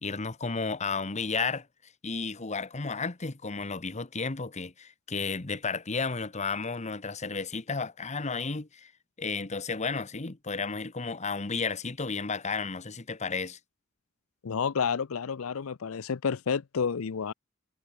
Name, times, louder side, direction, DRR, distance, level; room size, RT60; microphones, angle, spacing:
voice 1, 0.0-1.7 2.0-8.9 9.2-13.6, left 4 dB, 35° left, 1.2 m, -33 dB
voice 2, 14.4-17.3, left 6 dB, 90° left, 0.6 m, -30 dB
head